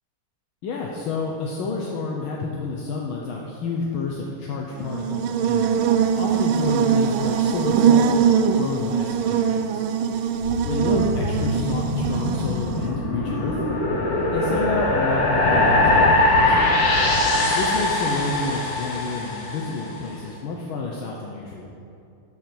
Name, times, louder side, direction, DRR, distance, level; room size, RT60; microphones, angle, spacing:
voice 1, 0.6-5.9 6.1-9.8 10.6-13.6 14.2-16.7 17.5-21.7, left 4 dB, 70° left, -2 dB, 1.6 m, -30 dB
Buzz, 4.8-12.9, right 7 dB, 75° right, 1.3 m, -22 dB
sound 1, 10.4-19.8, left 2 dB, 45° left, 1.7 m, -22 dB
12.0 x 4.4 x 7.7 m, 2.6 s
omnidirectional pair, 2.4 m